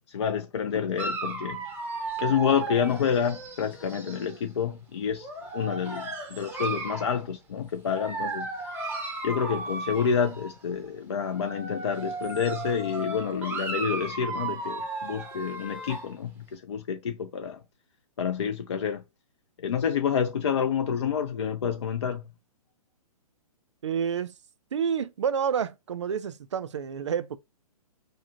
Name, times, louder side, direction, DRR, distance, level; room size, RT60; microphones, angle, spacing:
voice 1, 0.1-1.6 2.2-8.5 9.2-17.6 18.2-19.0 19.6-22.2, left 7 dB, 50° left, 0.5 m, -28 dB
Dog, 1.0-4.4 5.2-7.1 7.9-10.5 11.2-16.1, right 3 dB, 10° right, 0.8 m, -35 dB
voice 2, 23.8-24.3 24.7-27.4, right 7 dB, 50° right, 0.5 m, -29 dB
4.8 x 2.1 x 2.6 m
figure-of-eight pair, 120°, 19 cm